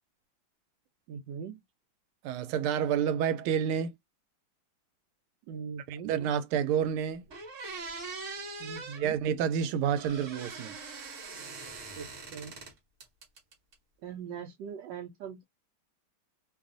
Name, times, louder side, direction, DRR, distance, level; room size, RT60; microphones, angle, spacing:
voice 1, 1.1-1.6 5.5-6.2 8.6-9.2 12.0-12.6 14.0-15.4, right 7 dB, 75° right, 1.1 m, -41 dB
voice 2, 2.2-3.9 5.9-7.3 9.0-10.8, right 8 dB, 90° right, 1.4 m, -29 dB
sound 1, 6.8-6.9 7.3-9.0 9.9-12.7 13.0-13.7, right 3 dB, 50° right, 0.9 m, -42 dB
3.2 x 2.3 x 2.4 m
omnidirectional pair, 2.3 m